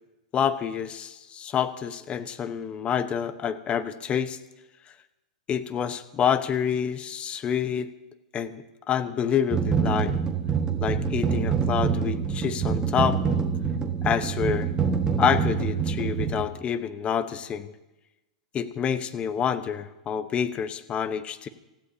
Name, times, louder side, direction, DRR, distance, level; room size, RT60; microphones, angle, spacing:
voice 1, 0.3-4.4 5.5-7.9 8.3-10.1 10.8-13.2 14.0-14.7 15.2-17.7 18.5-21.5, left 8 dB, 25° left, 11 dB, 1.1 m, -27 dB
sound 1, 9.5-16.4, right 6 dB, 20° right, 1.6 m, -26 dB
27.5 x 15.0 x 2.9 m, 1.0 s
hypercardioid pair, 115°, 4 cm